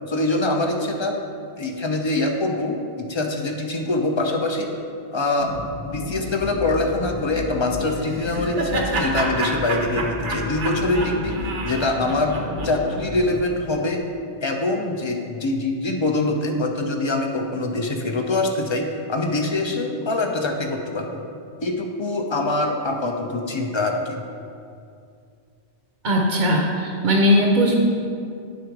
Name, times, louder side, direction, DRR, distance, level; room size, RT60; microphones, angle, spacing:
voice 1, 0.1-1.2 1.6-4.7 5.1-5.6 5.8-11.4 11.6-12.4 12.6-14.0 14.4-21.2 21.6-24.2, left 2 dB, 35° left, 2 dB, 0.4 m, -24 dB
sound 1, 5.4-13.4, left 2 dB, 55° left, 0.8 m, -32 dB
Laughter, 7.9-13.1, right 2 dB, 85° right, 1.2 m, -29 dB
voice 2, 26.0-27.7, equal, 45° right, -1 dB, 0.7 m, -19 dB
10.5 x 3.8 x 4.6 m, 2.4 s
omnidirectional pair, 1.2 m